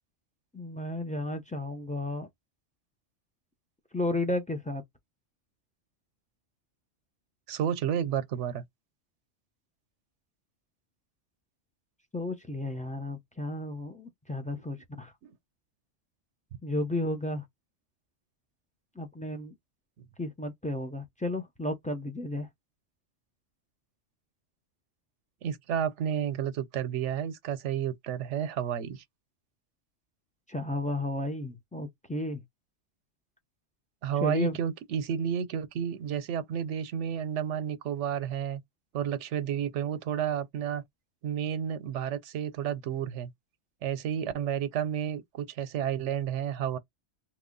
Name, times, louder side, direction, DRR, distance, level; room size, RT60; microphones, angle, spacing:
voice 1, 0.5-2.3 3.9-4.8 12.1-15.1 16.6-17.4 19.0-19.6 20.2-22.5 30.5-32.4 34.2-34.6, left 1 dB, 10° left, 0.5 m, -33 dB
voice 2, 7.5-8.6 15.2-15.3 25.4-29.0 34.0-38.6 38.9-40.8 41.2-43.3 43.8-46.8, right 9 dB, 85° right, 0.9 m, -31 dB
3.1 x 2.3 x 3.7 m
omnidirectional pair, 1.2 m